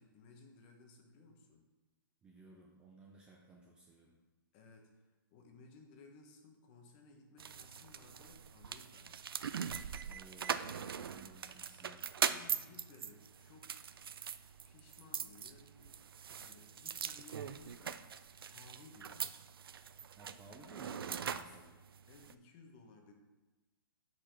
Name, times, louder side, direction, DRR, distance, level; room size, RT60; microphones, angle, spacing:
voice 1, 0.0-1.7 4.5-9.2 12.3-13.7 14.6-16.0 16.3-18.2 18.5-19.4 22.1-23.1, left 3 dB, 25° left, 3 dB, 1.0 m, -59 dB
voice 2, 2.2-4.2 10.0-12.1 20.2-21.8, right 2 dB, 10° right, -1 dB, 0.4 m, -57 dB
sound 1, 7.4-22.3, right 7 dB, 90° right, 0.4 m, -42 dB
6.6 x 5.0 x 6.0 m, 1.2 s
hypercardioid pair, 165°, 12 cm